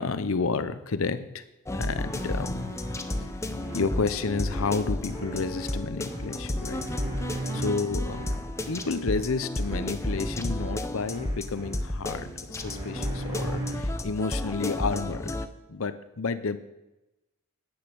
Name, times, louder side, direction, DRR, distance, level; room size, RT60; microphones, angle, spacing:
voice 1, 0.0-1.4 1.8-2.7 3.2-3.3 3.7-6.9 7.5-8.3 8.7-15.4 15.7-16.6, left 4 dB, 70° left, 13 dB, 0.7 m, -30 dB
sound 1, 1.7-15.5, left 1 dB, 15° left, 0.7 m, -32 dB
sound 2, 2.0-14.0, right 2 dB, 20° right, 5.5 m, -39 dB
10.0 x 9.8 x 6.1 m, 0.97 s
head